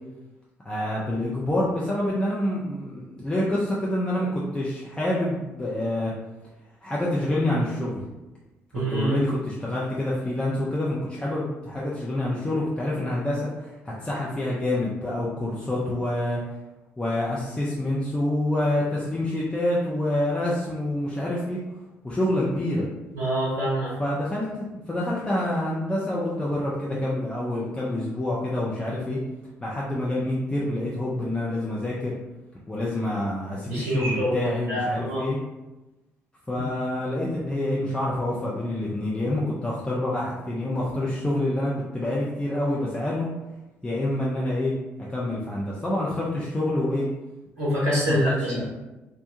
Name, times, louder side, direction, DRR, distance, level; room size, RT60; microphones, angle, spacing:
voice 1, 0.6-6.1 6.8-8.0 8.7-16.4 17.0-21.6 22.0-22.9 24.0-29.2 29.6-32.2 32.7-35.4 36.5-43.3 43.8-44.7 45.1-47.1 48.1-48.7, left 1 dB, 10° left, -6 dB, 0.5 m, -27 dB
voice 2, 8.7-9.2 23.1-23.9 33.7-35.2 47.6-48.5, equal, 80° right, -7 dB, 0.7 m, -25 dB
2.5 x 2.2 x 2.8 m, 1.0 s
figure-of-eight pair, 45°, 7 cm